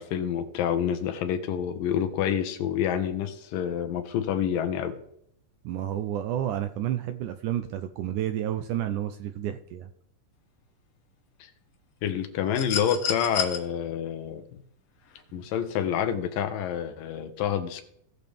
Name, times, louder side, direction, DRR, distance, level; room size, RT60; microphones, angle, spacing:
voice 1, 0.0-5.0 11.4-11.5 12.0-14.6 15.3-17.8, left 9 dB, 75° left, 7 dB, 2.5 m, -28 dB
voice 2, 5.6-9.9, right 11 dB, 80° right, 9 dB, 1.8 m, -30 dB
sound 1, 12.5-13.6 15.1-15.2, left 8 dB, 50° left, 2.1 m, -30 dB
18.5 x 6.6 x 3.5 m, 0.71 s
omnidirectional pair, 4.1 m